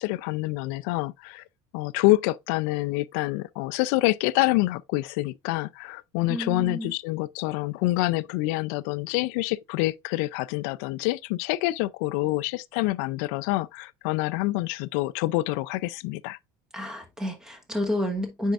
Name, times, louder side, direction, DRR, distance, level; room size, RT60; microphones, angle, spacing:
voice 1, 0.0-1.4 1.7-16.4, left 19 dB, 75° left, 0.4 m, -27 dB
voice 2, 6.3-6.9 16.7-18.5, left 1 dB, 5° right, 1.1 m, -30 dB
9.3 x 4.5 x 2.4 m
cardioid pair, 170°, 9 cm